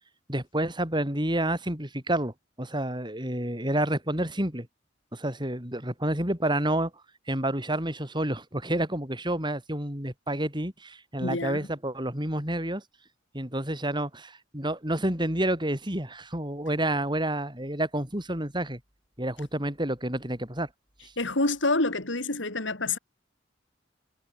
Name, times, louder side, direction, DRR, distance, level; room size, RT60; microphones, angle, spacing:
voice 1, 0.3-4.7 5.1-6.9 7.3-12.8 13.3-18.8 19.2-20.7 21.0-21.1, right 1 dB, 25° right, 7.4 m, -29 dB
voice 2, 11.2-11.7 21.2-23.0, left 2 dB, 85° left, 4.2 m, -27 dB
head